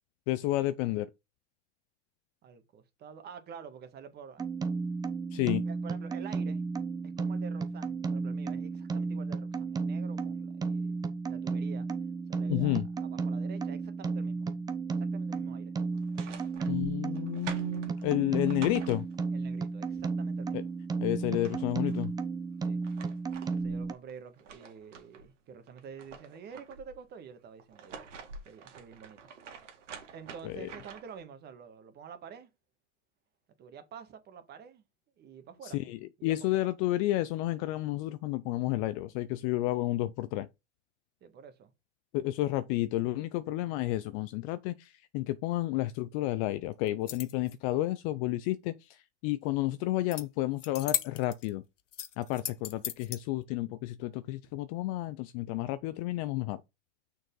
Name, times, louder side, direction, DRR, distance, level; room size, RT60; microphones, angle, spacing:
voice 1, 0.3-1.1 5.3-5.6 12.5-12.9 16.7-19.1 20.5-20.6 21.0-22.1 30.4-30.7 35.7-40.5 42.1-51.6 52.2-56.6, left 16 dB, 30° left, 0.4 m, -31 dB
voice 2, 2.4-4.4 5.5-6.6 7.0-11.9 12.3-14.5 15.0-15.7 19.3-20.7 22.6-22.8 23.5-28.0 28.4-29.2 30.1-32.5 33.6-34.8 35.2-35.8 36.2-36.7 41.2-41.7, right 7 dB, 25° right, 1.5 m, -48 dB
sound 1, 4.4-23.9, right 4 dB, 10° right, 0.6 m, -33 dB
sound 2, 15.9-19.5 20.9-21.0 21.2-22.1 22.6-25.3 25.7-27.0 27.6-31.2, right 5 dB, 80° right, 2.0 m, -48 dB
sound 3, 46.9-47.5 50.1-50.2 50.6-51.5 51.9-53.2, left 10 dB, 90° left, 0.9 m, -36 dB
6.3 x 4.6 x 3.8 m
hypercardioid pair, 120°, 36 cm